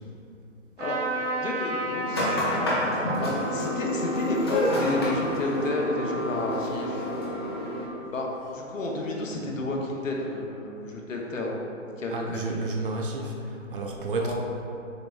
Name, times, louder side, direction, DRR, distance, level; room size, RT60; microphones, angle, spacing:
Trumpet, 0.8-6.3, right 1 dB, 60° right, 1.2 m, -34 dB
voice 1, 1.3-2.3 2.7-7.4 8.1-11.5 12.0-12.6 14.2-14.3, left 2 dB, 80° left, -1 dB, 0.9 m, -31 dB
sound 1, 2.1-7.8, left 1 dB, 20° left, 0.4 m, -29 dB
sound 2, 4.3-10.2, left 1 dB, 5° left, 1.1 m, -34 dB
voice 2, 12.1-14.3, right 2 dB, 45° right, 0 dB, 0.5 m, -31 dB
6.6 x 2.9 x 2.3 m, 2.7 s
hypercardioid pair, 145°, 39 cm